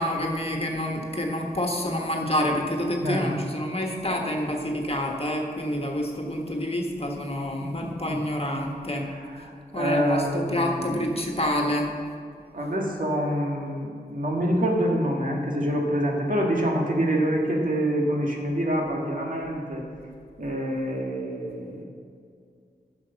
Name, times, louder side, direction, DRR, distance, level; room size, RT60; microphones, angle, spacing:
voice 1, 0.0-9.1 9.7-11.9, left 1 dB, 35° left, 1 dB, 1.5 m, -28 dB
voice 2, 3.0-3.5 7.6-8.2 8.9-11.2 12.5-19.8 20.4-21.8, equal, 55° right, -1 dB, 1.8 m, -26 dB
10.0 x 6.5 x 5.8 m, 2.2 s
wide cardioid pair, 55°, 17 cm